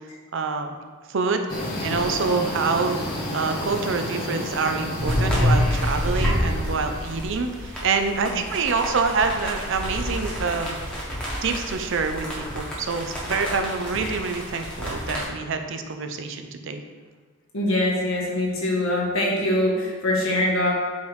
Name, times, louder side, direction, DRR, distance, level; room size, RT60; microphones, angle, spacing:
voice 1, 0.3-0.7 1.1-1.4 1.8-3.1 3.3-10.8 11.4-16.8, right 4 dB, 60° right, 6 dB, 0.6 m, -26 dB
sound 1, 1.5-7.2, left 1 dB, 45° left, 1.6 m, -31 dB
sound 2, 5.0-15.2, equal, 5° left, 1.6 m, -28 dB
voice 2, 17.5-20.7, left 1 dB, 65° left, -3 dB, 1.7 m, -23 dB
8.0 x 3.4 x 4.9 m, 1.5 s
head